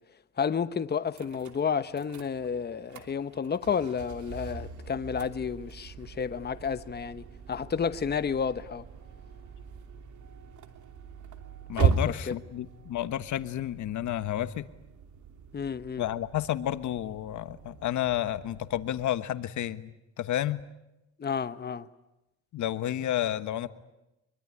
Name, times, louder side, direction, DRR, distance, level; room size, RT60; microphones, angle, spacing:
voice 1, 0.4-8.8 11.8-12.0 12.3-12.4 15.5-16.0 21.2-21.9, left 6 dB, 35° left, 1.1 m, -31 dB
sound 1, 1.1-19.1, right 6 dB, 75° right, 2.9 m, -38 dB
voice 2, 11.7-14.7 16.0-20.6 22.5-23.7, left 12 dB, 75° left, 1.3 m, -31 dB
24.5 x 23.5 x 9.9 m
cardioid pair, 90°, 30 cm